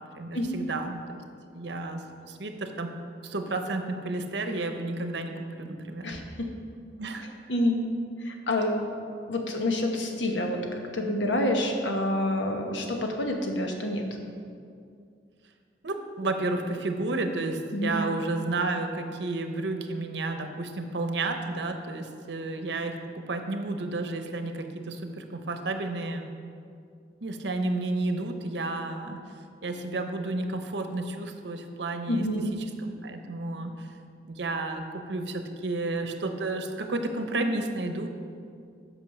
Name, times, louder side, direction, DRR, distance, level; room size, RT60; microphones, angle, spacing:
voice 1, 0.1-1.2 1.5-2.0 2.3-2.9 3.2-6.1 7.0-7.3 15.8-26.3 27.2-29.2 29.6-32.3 32.8-33.9 34.2-38.1, right 2 dB, 70° right, 6 dB, 0.8 m, -31 dB
voice 2, 6.0-6.5 7.5-7.8 8.2-8.8 9.3-14.0 17.7-18.0 32.1-32.5, left 1 dB, 85° left, 3 dB, 1.1 m, -28 dB
8.7 x 5.4 x 6.4 m, 2.3 s
head